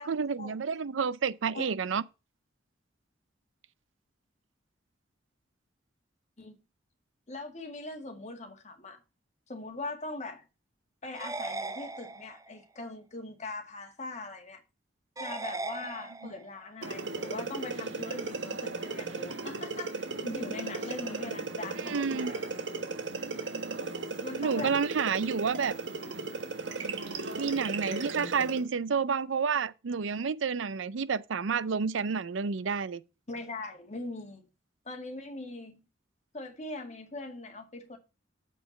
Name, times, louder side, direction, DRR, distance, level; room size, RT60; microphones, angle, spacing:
voice 1, 0.0-2.0 16.2-16.3 21.8-22.3 24.4-25.8 27.4-33.0, right 5 dB, 85° right, 0.5 m, -30 dB
voice 2, 7.3-9.0 9.5-10.5 11.0-14.6 15.2-22.3 24.2-24.8 33.3-34.4 34.9-35.8 36.3-38.0, left 2 dB, 40° left, 1.9 m, -41 dB
sound 1, 11.1-12.6 15.2-16.6, right 3 dB, 20° right, 0.6 m, -38 dB
sound 2, 16.8-28.7, right 3 dB, 70° right, 1.4 m, -36 dB
7.5 x 5.8 x 5.3 m
head